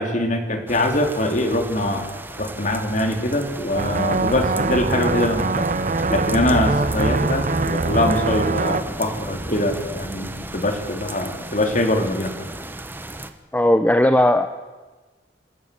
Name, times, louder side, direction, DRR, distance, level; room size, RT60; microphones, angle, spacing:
voice 1, 0.0-5.7 6.1-12.3, left 1 dB, 45° left, 5 dB, 2.8 m, -23 dB
sound 1, 0.7-13.3, right 1 dB, 10° right, 1.1 m, -35 dB
sound 2, 3.8-8.8, right 3 dB, 45° right, 0.7 m, -23 dB
voice 2, 13.5-14.5, left 1 dB, 10° left, 9 dB, 0.7 m, -17 dB
27.5 x 12.5 x 8.2 m, 1.2 s
head